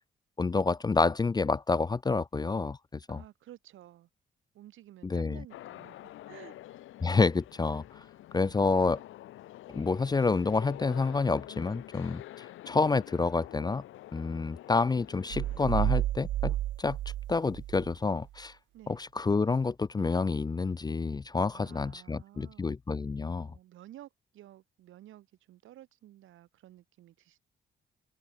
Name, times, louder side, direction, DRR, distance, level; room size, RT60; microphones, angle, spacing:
voice 1, 0.4-3.2 5.0-5.4 7.0-8.0 8.3-9.0 9.7-13.8 14.1-17.0 17.3-18.5 18.9-23.5, left 4 dB, 20° left, 0.5 m, -28 dB
voice 2, 2.9-4.1 4.5-6.8 8.3-8.7 18.7-19.0 21.5-22.8 23.4-27.4, right 13 dB, 80° right, 5.3 m, -53 dB
sound 1, 5.5-16.0, left 15 dB, 85° left, 6.1 m, -47 dB
sound 2, 15.3-17.9, right 14 dB, 65° right, 0.5 m, -31 dB
cardioid pair, 90°, 20 cm